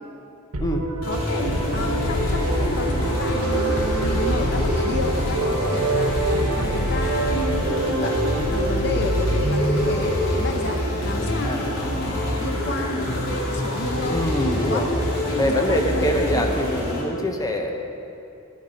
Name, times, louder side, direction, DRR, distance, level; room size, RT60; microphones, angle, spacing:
sound 1, 0.5-10.6, right 2 dB, 80° right, 1.0 m, -26 dB
sound 2, 1.0-17.0, left 1 dB, 85° left, 2.5 m, -25 dB
voice 1, 1.1-6.1 6.6-14.3 14.7-14.9 15.4-16.6, left 3 dB, 50° left, 5 dB, 0.7 m, -32 dB
voice 2, 11.4-11.7 14.1-14.9 15.4-17.8, equal, 15° left, 3 dB, 0.8 m, -24 dB
11.0 x 9.4 x 5.1 m, 2.6 s
head